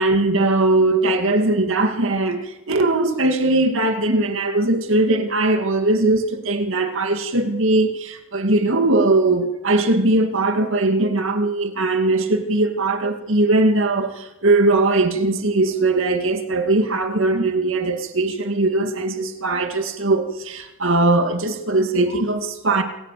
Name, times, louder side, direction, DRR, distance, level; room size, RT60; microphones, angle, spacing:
voice 1, 0.0-22.8, right 2 dB, 60° right, 2.3 m, -20 dB
28.0 x 18.5 x 8.5 m
head